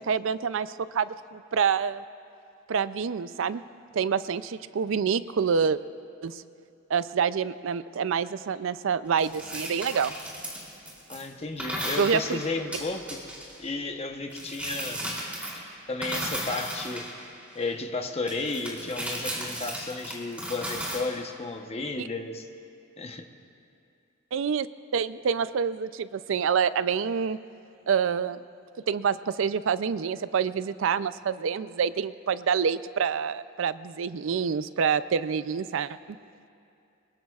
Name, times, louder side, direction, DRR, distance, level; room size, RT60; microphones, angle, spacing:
voice 1, 0.0-2.0 2.7-3.6 3.9-5.8 6.2-6.4 6.9-10.1 12.0-12.4 22.0-22.1 24.3-24.7 24.9-27.4 27.9-28.4 28.9-36.0, right 6 dB, 65° right, 15 dB, 0.4 m, -27 dB
sound 1, 9.2-11.2 11.6-13.6 14.3-15.7 16.0-17.6 18.3-21.0, right 1 dB, 5° right, 3.0 m, -35 dB
voice 2, 11.1-13.2 13.6-15.1 15.9-17.1 17.5-22.5 23.0-23.2, left 3 dB, 30° left, 5 dB, 0.9 m, -33 dB
23.5 x 21.5 x 2.4 m, 2.5 s
head